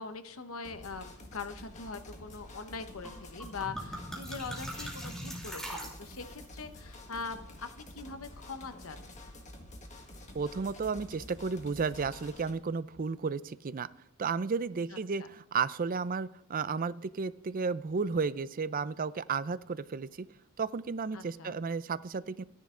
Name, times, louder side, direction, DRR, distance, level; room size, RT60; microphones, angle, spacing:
voice 1, 0.0-9.1 15.2-15.3 21.1-21.6, left 4 dB, 65° left, 9 dB, 1.0 m, -42 dB
sound 1, 0.6-12.5, left 1 dB, 35° left, 1.9 m, -49 dB
sound 2, 3.0-3.1 3.4-6.4, equal, ahead, 2.8 m, -41 dB
voice 2, 10.3-13.9 14.2-20.3 20.6-22.4, right 5 dB, 40° right, 16 dB, 0.4 m, -33 dB
14.5 x 10.5 x 3.8 m, 0.80 s
head